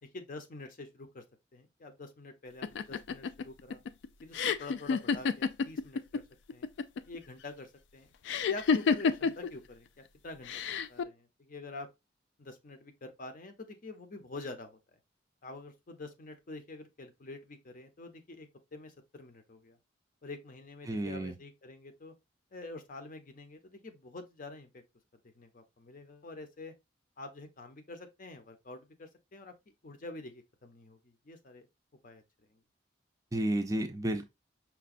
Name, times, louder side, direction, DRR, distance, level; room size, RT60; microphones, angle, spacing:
voice 1, 0.0-1.2 1.5-3.8 4.2-6.2 6.5-6.7 7.1-8.1 8.5-10.6 10.9-11.9 12.4-15.0 15.4-19.8 20.2-22.1 22.5-24.8 25.4-26.7 27.2-29.5 29.8-31.7 32.0-32.2 32.5-32.6, left 2 dB, 45° left, 0.7 m, -47 dB
sound 1, 2.6-6.2 6.5-7.2 8.3-9.5 10.5-11.0, left 5 dB, 70° left, 0.3 m, -29 dB
voice 2, 20.9-21.3 33.3-34.3, right 1 dB, 20° right, 0.4 m, -31 dB
5.7 x 2.2 x 2.4 m
head